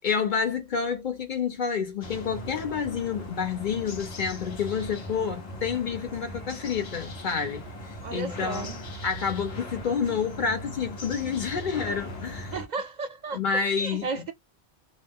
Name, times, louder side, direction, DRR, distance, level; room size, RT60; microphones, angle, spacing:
voice 1, 0.0-7.7 8.1-8.7 9.0-12.5 13.3-14.1, left 6 dB, 50° left, 0.9 m, -29 dB
sound 1, 2.0-12.7, left 1 dB, 70° left, 1.3 m, -39 dB
voice 2, 8.0-8.8 12.5-14.3, right 4 dB, 55° right, 0.5 m, -34 dB
2.7 x 2.1 x 3.4 m
omnidirectional pair, 1.1 m